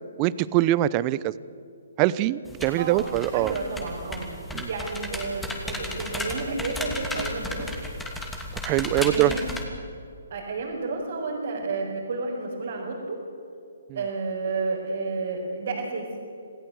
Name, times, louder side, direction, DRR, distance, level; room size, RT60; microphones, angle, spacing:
voice 1, 0.2-1.3 2.0-3.5 4.5-4.7 8.6-9.3, right 15 dB, 30° right, 19 dB, 0.7 m, -23 dB
sound 1, 2.5-9.6, left 1 dB, 5° left, 2.7 m, -34 dB
voice 2, 2.8-4.3 4.7-7.7 9.0-9.4 10.3-13.2 13.9-16.1, right 3 dB, 65° right, -4 dB, 5.2 m, -31 dB
27.5 x 16.0 x 8.1 m, 2.5 s
hypercardioid pair, 145°, 0 cm